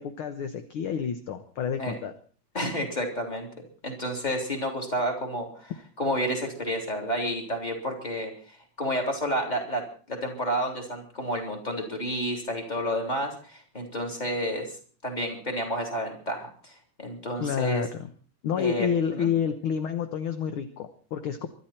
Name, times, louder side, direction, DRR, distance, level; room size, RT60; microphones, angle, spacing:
voice 1, 0.0-2.1 17.4-18.1 18.4-21.5, left 7 dB, 60° left, 9 dB, 1.5 m, -29 dB
voice 2, 2.5-3.5 3.8-5.7 6.0-9.8 10.1-14.7 15.0-17.8 18.6-19.3, equal, 15° left, 1 dB, 3.5 m, -30 dB
24.5 x 12.0 x 4.4 m, 0.42 s
omnidirectional pair, 3.3 m